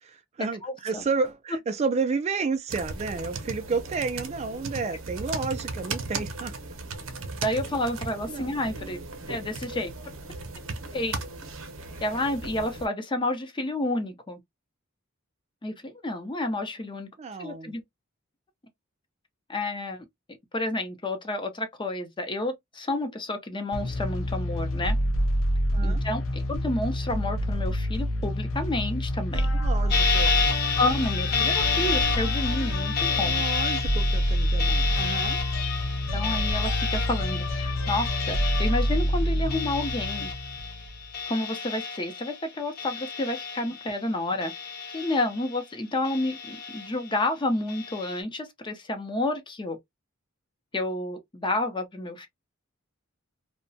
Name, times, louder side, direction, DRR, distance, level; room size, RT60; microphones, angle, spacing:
voice 1, 0.0-6.5 8.3-8.5 17.2-17.7 25.7-26.0 29.6-30.3 33.1-35.4, right 4 dB, 30° right, 0.3 m, -31 dB
voice 2, 0.6-1.0 7.4-9.0 9.3-9.9 10.9-11.2 12.0-14.4 15.6-17.1 17.4-17.8 19.5-20.1 20.5-25.0 25.8-29.5 30.2-30.3 30.8-33.4 36.1-40.3 41.3-44.5 44.9-49.8 50.7-52.3, left 2 dB, 25° left, 0.6 m, -30 dB
sound 1, 2.7-12.9, right 3 dB, 80° right, 0.7 m, -37 dB
sound 2, 23.7-41.0, equal, 75° left, 0.5 m, -27 dB
sound 3, 29.9-42.5 42.8-44.0 44.4-45.6 46.0-47.1 47.7-48.2, left 5 dB, 50° left, 0.9 m, -30 dB
2.8 x 2.1 x 2.6 m
head